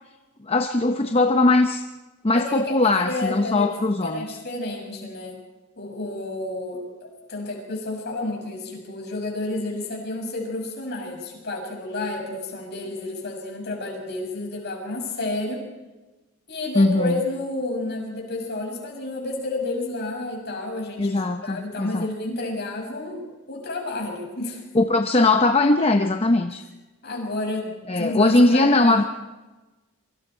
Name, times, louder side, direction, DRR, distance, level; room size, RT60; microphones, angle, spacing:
voice 1, 0.4-1.8 2.2-4.2 16.8-17.2 21.0-22.1 24.7-26.6 27.9-29.0, left 2 dB, 25° left, 6 dB, 0.8 m, -20 dB
voice 2, 2.3-3.7 4.0-5.4 5.8-15.6 16.5-24.6 27.0-29.1, left 2 dB, 50° left, 1 dB, 6.7 m, -30 dB
27.0 x 24.5 x 4.5 m, 1.2 s
head